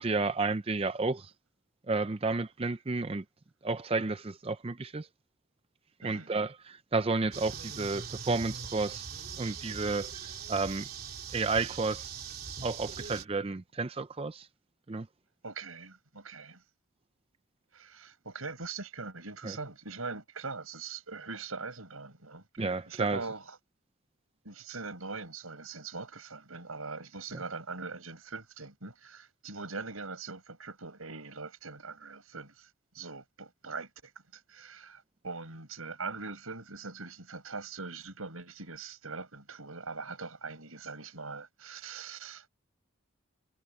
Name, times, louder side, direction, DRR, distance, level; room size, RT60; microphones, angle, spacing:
voice 1, 0.0-1.3 1.9-3.2 3.6-5.1 6.0-9.0 9.4-10.2 10.5-10.9 11.3-12.1 12.6-14.5 14.9-15.1 19.4-19.6 22.6-23.2, right 3 dB, 25° right, 0.5 m, -31 dB
voice 2, 6.0-6.3 15.4-16.6 17.7-23.6 24.4-32.7 32.9-42.5, right 4 dB, 90° right, 6.2 m, -42 dB
sound 1, 7.3-13.3, right 6 dB, 45° right, 3.6 m, -41 dB
head